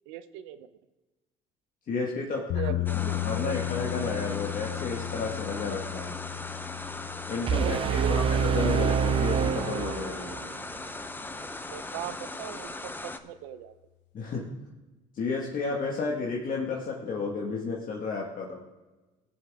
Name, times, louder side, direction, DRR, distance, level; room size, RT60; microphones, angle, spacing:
voice 1, 0.1-0.7 2.3-3.6 7.5-8.4 11.7-12.9 13.2-13.7, right 11 dB, 85° right, 12 dB, 0.8 m, -38 dB
voice 2, 1.9-2.5 2.9-6.2 7.3-10.3 14.1-14.5 15.1-18.6, left 4 dB, 50° left, -2 dB, 1.7 m, -32 dB
sound 1, 2.5-10.6, left 16 dB, 70° left, 0.7 m, -35 dB
sound 2, 2.9-13.2, left 2 dB, 10° left, 0.8 m, -39 dB
sound 3, 7.5-10.5, right 7 dB, 30° right, 0.5 m, -26 dB
17.0 x 7.3 x 3.6 m, 1.1 s
supercardioid pair, 90°, 19 cm